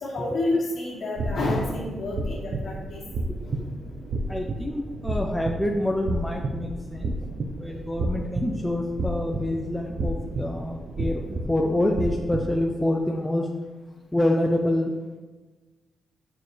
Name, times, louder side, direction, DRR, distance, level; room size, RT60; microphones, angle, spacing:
voice 1, 0.0-3.0 3.4-3.7, left 2 dB, 50° left, -4 dB, 2.2 m, -29 dB
sound 1, 1.2-12.6, right 2 dB, 45° right, 0.7 m, -31 dB
voice 2, 4.3-13.5 14.1-14.9, left 1 dB, 5° left, 0 dB, 0.5 m, -27 dB
8.6 x 6.9 x 3.3 m, 1.2 s
wide cardioid pair, 160°, 0 cm